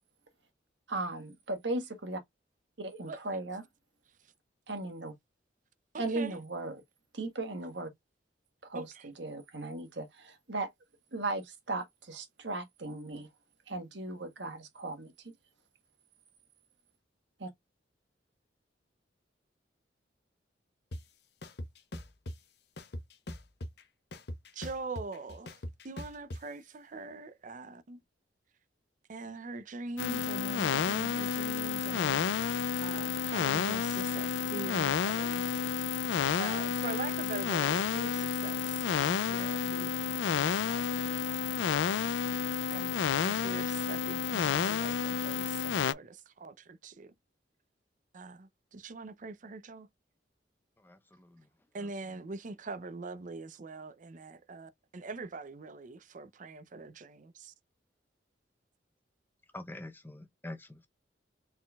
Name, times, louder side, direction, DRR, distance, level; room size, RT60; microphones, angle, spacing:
voice 1, 0.9-2.2 2.8-3.6 4.7-5.1 6.0-6.8 7.1-7.9 8.7-10.7 11.1-13.3 13.7-15.1 17.4-17.5, right 2 dB, 70° right, 1.4 m, -37 dB
voice 2, 5.9-6.3 8.7-9.1 24.5-25.6 25.8-28.0 29.1-32.5 32.8-35.4 36.4-41.6 42.7-47.1 48.1-49.9 51.7-57.5, right 3 dB, 45° right, 0.5 m, -43 dB
sound 1, 20.9-21.0 21.4-22.4 22.8-23.8 24.1-26.4, left 1 dB, 65° left, 0.9 m, -41 dB
sound 2, 30.0-45.9, left 6 dB, 85° left, 0.4 m, -31 dB
voice 3, 50.8-51.5 51.8-51.9 59.5-60.9, left 1 dB, 10° left, 0.7 m, -46 dB
4.3 x 3.8 x 2.3 m
head